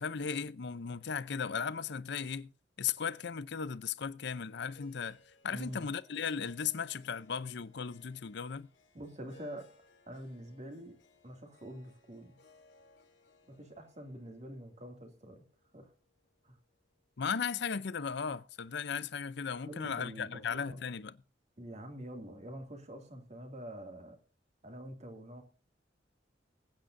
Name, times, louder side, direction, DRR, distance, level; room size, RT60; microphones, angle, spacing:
voice 1, 0.0-2.5 2.8-5.2 5.4-8.7 17.2-21.1, left 6 dB, 65° left, 0.6 m, -36 dB
Harp, 4.7-16.9, left 3 dB, 85° left, 2.5 m, -64 dB
voice 2, 5.5-5.8 8.9-9.7 10.1-10.9 11.2-12.4 13.5-15.4 15.7-15.9 16.4-16.6 19.7-20.8 21.6-24.2 24.6-25.4, equal, 40° right, 2.4 m, -46 dB
20.5 x 9.0 x 2.6 m
head